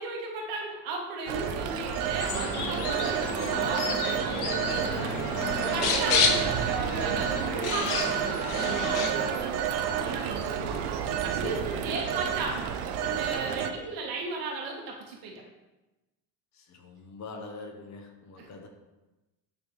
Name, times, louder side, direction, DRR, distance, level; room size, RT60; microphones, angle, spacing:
voice 1, 0.0-5.2 5.7-10.8 11.2-12.7 13.0-15.4 18.4-18.5, right 3 dB, 60° right, 0 dB, 1.4 m, -36 dB
voice 2, 1.3-1.8 2.4-2.7 5.8-6.1 11.3-11.9 16.5-18.7, left 3 dB, 45° left, 4 dB, 1.0 m, -44 dB
Telephone, 1.3-13.7, right 8 dB, 80° right, 0.7 m, -30 dB
sound 1, 2.2-9.1, left 5 dB, 75° left, 0.9 m, -31 dB
8.5 x 3.6 x 3.2 m, 1.1 s
cardioid pair, 125°, 40 cm